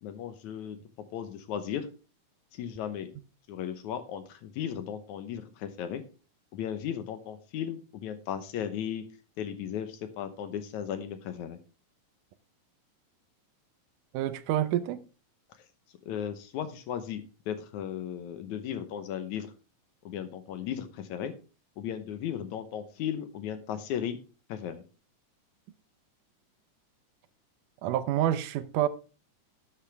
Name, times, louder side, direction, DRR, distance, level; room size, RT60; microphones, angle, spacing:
voice 1, 0.0-0.8 1.1-1.9 2.5-3.1 3.5-6.0 6.5-9.0 9.4-11.6 16.0-19.5 20.1-21.3 21.8-24.2 24.5-24.8, left 9 dB, 75° left, 2.2 m, -36 dB
voice 2, 14.1-15.0 27.8-28.9, right 12 dB, 80° right, 2.3 m, -27 dB
12.0 x 8.5 x 3.4 m
omnidirectional pair, 3.7 m